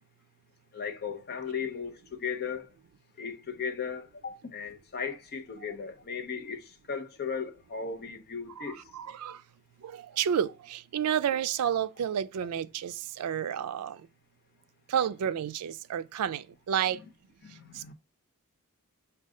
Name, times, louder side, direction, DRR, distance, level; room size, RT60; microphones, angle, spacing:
voice 1, 0.7-2.7 3.2-8.8 16.9-17.0 17.4-17.9, left 6 dB, 45° left, 0.7 m, -36 dB
voice 2, 8.6-9.4 9.8-14.0 14.9-17.0 17.8-17.9, right 9 dB, 85° right, 0.4 m, -31 dB
6.3 x 2.3 x 3.7 m
head